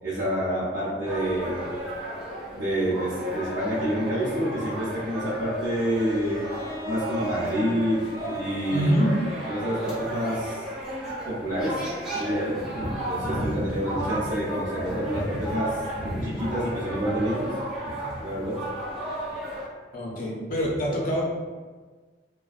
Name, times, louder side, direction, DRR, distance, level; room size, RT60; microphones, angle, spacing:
voice 1, 0.0-1.7 2.5-6.4 6.9-8.0 8.3-9.0 9.5-10.7 11.3-11.8 12.1-17.5 17.9-18.6, equal, 80° right, -11 dB, 0.7 m, -28 dB
sound 1, 1.0-19.7, right 1 dB, 5° right, 0.9 m, -34 dB
Bowed string instrument, 5.9-10.8, left 1 dB, 25° right, 0.5 m, -44 dB
voice 2, 8.7-9.1 19.9-21.3, equal, 55° left, -3 dB, 0.6 m, -25 dB
2.5 x 2.2 x 2.3 m, 1.4 s
head